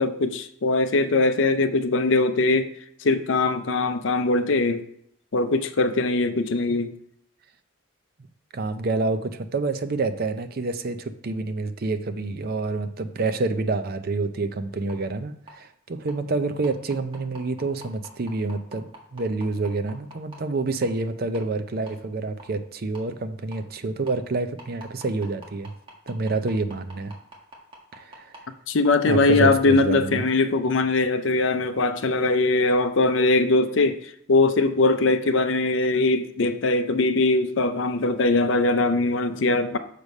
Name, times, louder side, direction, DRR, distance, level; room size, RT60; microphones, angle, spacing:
voice 1, 0.0-2.7 3.0-4.8 5.3-6.9 28.7-39.8, left 3 dB, 65° left, 0.6 m, -21 dB
voice 2, 8.5-25.7 26.1-27.1 27.9-28.3 29.1-30.3, right 3 dB, 50° right, 0.5 m, -28 dB
sound 1, 14.9-15.0 15.5-15.6 16.1-16.2 16.6-20.4 20.8-20.9 21.3-21.4 21.9-22.0 22.4-22.5 22.9-23.0 23.5-23.6 24.1-24.2 24.6-28.4 28.8-28.9, right 2 dB, 25° right, 1.5 m, -43 dB
6.7 x 4.9 x 5.3 m
head